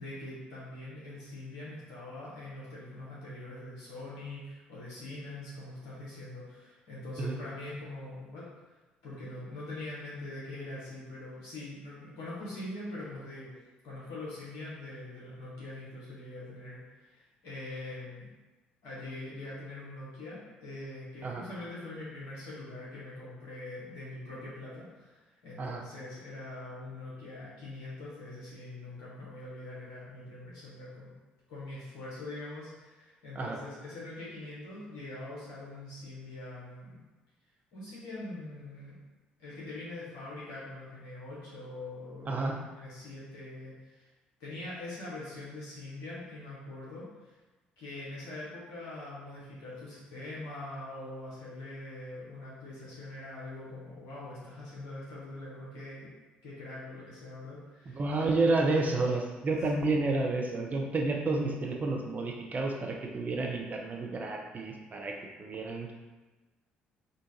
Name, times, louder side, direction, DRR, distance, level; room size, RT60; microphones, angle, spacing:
voice 1, 0.0-8.5 9.0-13.5 13.8-18.3 18.8-31.1 31.5-37.0 37.7-39.0 39.4-44.1 44.4-47.4 47.8-56.1 56.4-58.3, left 2 dB, 65° left, -8 dB, 1.3 m, -43 dB
voice 2, 42.2-42.6 57.9-65.9, right 3 dB, 30° right, 1 dB, 0.6 m, -30 dB
3.8 x 2.5 x 2.8 m, 1.2 s
figure-of-eight pair, 45°, 5 cm